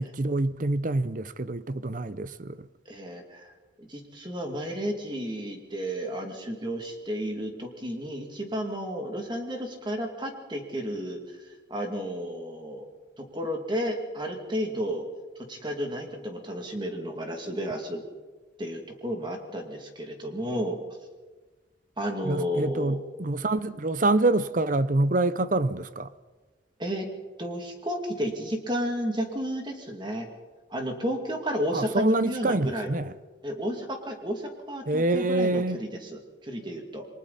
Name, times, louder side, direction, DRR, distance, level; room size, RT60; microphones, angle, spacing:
voice 1, 0.0-2.7 22.2-26.1 31.7-33.1 34.9-35.8, right 2 dB, 45° right, 0.7 m, -26 dB
voice 2, 2.9-3.5 3.8-11.2 11.7-12.9 13.2-15.1 15.5-18.0 18.6-20.8 22.0-23.0 26.8-27.1 27.4-30.3 30.7-32.9 33.4-37.1, equal, 25° right, 2.5 m, -32 dB
29.0 x 22.5 x 4.2 m
head